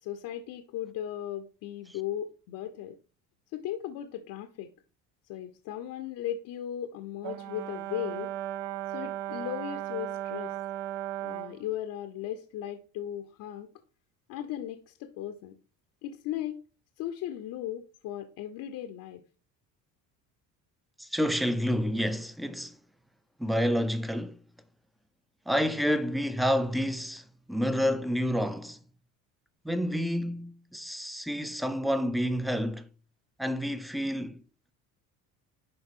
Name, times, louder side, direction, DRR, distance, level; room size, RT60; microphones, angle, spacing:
voice 1, 0.0-3.0 3.5-4.7 5.3-8.3 8.9-10.5 11.2-13.7 14.3-15.6 16.0-16.6 17.0-19.2, left 11 dB, 65° left, 0.8 m, -37 dB
Brass instrument, 7.2-11.6, right 12 dB, 60° right, 0.5 m, -36 dB
voice 2, 21.0-22.8 23.4-24.4 25.5-28.8 29.6-32.9 33.4-34.4, equal, ahead, 0.4 m, -29 dB
10.5 x 3.6 x 3.6 m
cardioid pair, 110°, 35 cm